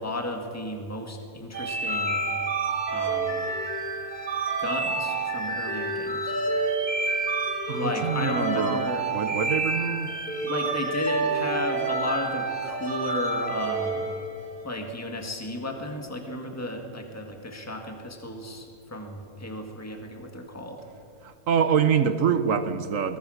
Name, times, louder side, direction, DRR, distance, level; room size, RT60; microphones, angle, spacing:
voice 1, 0.0-2.2 2.9-3.5 4.6-6.4 7.7-9.1 10.4-14.1 14.6-20.8, left 1 dB, 10° left, 3 dB, 2.0 m, -34 dB
sound 1, 1.5-14.6, right 3 dB, 30° right, 3.1 m, -28 dB
voice 2, 7.7-8.8 9.1-10.1 21.2-23.2, right 7 dB, 65° right, 11 dB, 1.2 m, -25 dB
23.0 x 19.0 x 6.5 m, 2.5 s
omnidirectional pair, 1.5 m